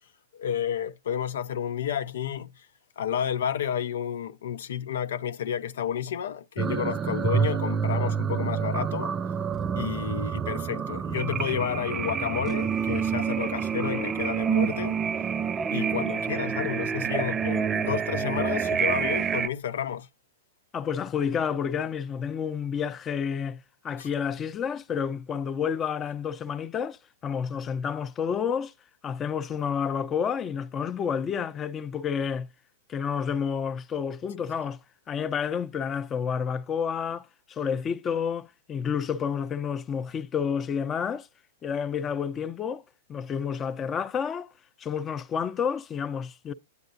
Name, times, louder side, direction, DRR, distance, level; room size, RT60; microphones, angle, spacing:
voice 1, 0.3-2.7 3.0-9.1 9.8-15.0 15.7-20.1 24.0-24.1, left 9 dB, 75° left, 0.6 m, -31 dB
sound 1, 6.6-19.5, right 7 dB, 20° right, 0.4 m, -28 dB
voice 2, 20.7-28.7 29.0-32.5 32.9-34.8 35.1-41.3 41.6-42.8 43.1-44.5 44.8-46.5, left 7 dB, 25° left, 0.6 m, -30 dB
9.5 x 7.9 x 2.6 m
hypercardioid pair, 125°, 0 cm